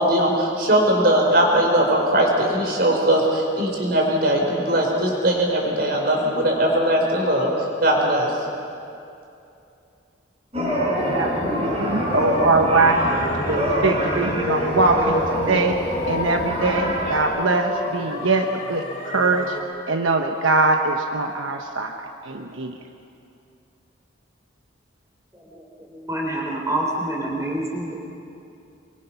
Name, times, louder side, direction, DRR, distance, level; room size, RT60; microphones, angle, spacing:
voice 1, 0.0-7.5 7.8-8.3, right 1 dB, 50° right, 0 dB, 4.8 m, -20 dB
sound 1, 10.5-17.2, equal, 30° right, 5.4 m, -25 dB
sound 2, 10.9-19.6, left 1 dB, 35° left, 3.2 m, -29 dB
voice 2, 11.0-13.0 13.5-15.2 15.5-15.8 16.1-18.8 19.1-19.5 19.9-21.9 22.2-22.7, right 3 dB, 80° right, 4 dB, 1.2 m, -22 dB
voice 3, 25.3-27.9, right 1 dB, 15° right, -2 dB, 3.7 m, -27 dB
24.0 x 24.0 x 5.9 m, 2.6 s
head